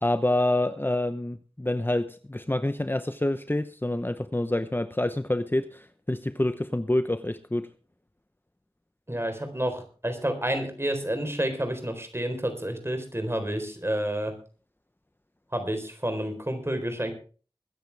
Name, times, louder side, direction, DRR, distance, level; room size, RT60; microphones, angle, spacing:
voice 1, 0.0-7.7, left 1 dB, 20° left, 11 dB, 0.8 m, -27 dB
voice 2, 9.1-14.3 15.5-17.1, right 1 dB, 25° right, 7 dB, 4.1 m, -29 dB
22.0 x 10.5 x 3.4 m, 0.38 s
wide cardioid pair, 40°, 10 cm